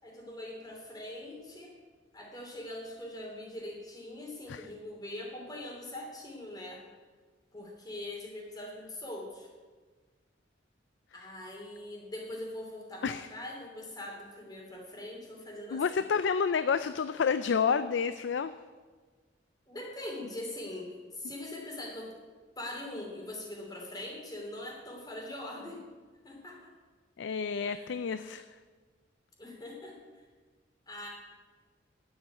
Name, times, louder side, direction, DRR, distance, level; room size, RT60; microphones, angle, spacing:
voice 1, 0.0-1.7 2.1-6.8 7.5-9.5 11.1-16.0 19.7-22.1 22.6-25.8 26.2-26.7 27.7-27.9 29.4-30.0 30.9-31.1, left 1 dB, 20° left, 0 dB, 2.9 m, -42 dB
voice 2, 15.7-18.6 27.2-28.5, left 6 dB, 85° left, 12 dB, 0.4 m, -29 dB
9.2 x 8.0 x 9.3 m, 1.4 s
head